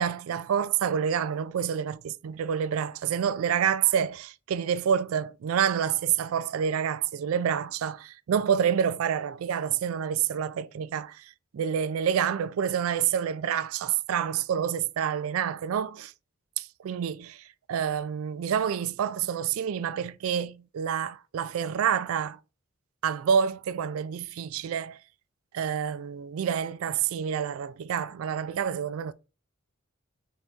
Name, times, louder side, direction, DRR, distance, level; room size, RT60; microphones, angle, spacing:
voice 1, 0.0-16.1 16.6-22.4 23.0-25.0 25.5-29.1, right 8 dB, 85° right, 0.3 m, -28 dB
4.0 x 3.4 x 3.6 m
head